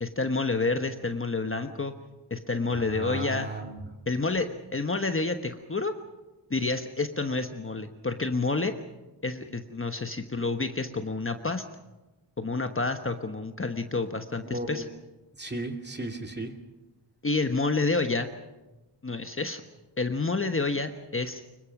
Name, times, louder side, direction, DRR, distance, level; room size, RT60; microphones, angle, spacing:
voice 1, 0.0-1.9 2.3-3.5 4.1-5.9 6.5-8.7 9.2-11.6 12.4-14.8 17.2-18.3 19.0-19.6 20.0-21.4, left 3 dB, 30° left, 7 dB, 1.2 m, -29 dB
voice 2, 2.7-3.8 14.4-14.9 15.4-16.5, right 2 dB, 25° right, 4 dB, 2.5 m, -35 dB
25.0 x 22.5 x 6.0 m, 1.1 s
wide cardioid pair, 100°, 44 cm